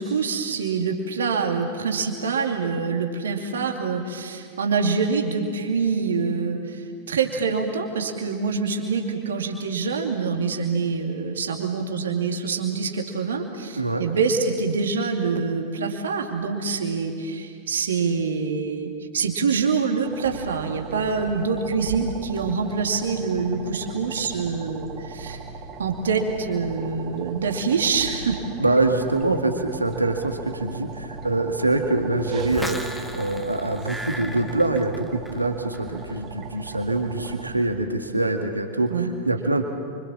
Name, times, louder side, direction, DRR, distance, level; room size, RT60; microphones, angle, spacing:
voice 1, 0.0-25.4 25.8-28.4 38.9-39.1, right 5 dB, 65° right, 3 dB, 2.6 m, -25 dB
sound 1, 20.0-37.5, right 4 dB, 35° right, 2.5 m, -38 dB
voice 2, 28.6-32.8 33.1-39.6, right 2 dB, 85° right, 5 dB, 1.9 m, -24 dB
sound 2, 32.4-35.5 35.7-36.2, equal, 5° left, 1.8 m, -36 dB
29.0 x 25.0 x 7.3 m, 2.2 s
figure-of-eight pair, 90°, 0 cm